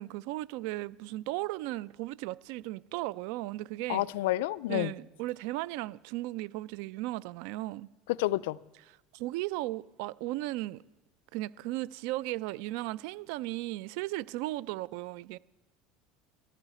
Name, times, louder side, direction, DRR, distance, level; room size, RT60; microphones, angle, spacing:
voice 1, 0.0-4.1 4.7-7.9 8.9-10.8 11.3-15.4, right 18 dB, 75° right, 0.4 m, -36 dB
voice 2, 3.9-4.9 8.2-8.6, left 16 dB, 85° left, 0.3 m, -29 dB
14.0 x 13.0 x 4.3 m
supercardioid pair, 120°, 0 cm